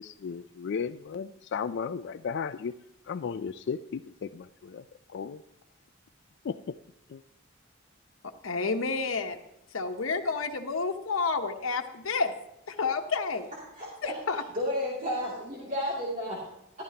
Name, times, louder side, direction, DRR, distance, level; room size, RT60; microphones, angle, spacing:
voice 1, 0.0-2.7 3.1-4.8 5.1-5.4 6.4-6.8 7.1-7.2, left 6 dB, 60° left, 11 dB, 0.3 m, -35 dB
voice 2, 8.4-9.4 9.7-12.3 12.7-13.5 14.0-14.4, left 4 dB, 85° left, 5 dB, 1.0 m, -30 dB
voice 3, 13.8-14.1 14.5-16.4, left 1 dB, 40° right, -6 dB, 2.6 m, -32 dB
14.5 x 12.5 x 2.9 m, 0.83 s
head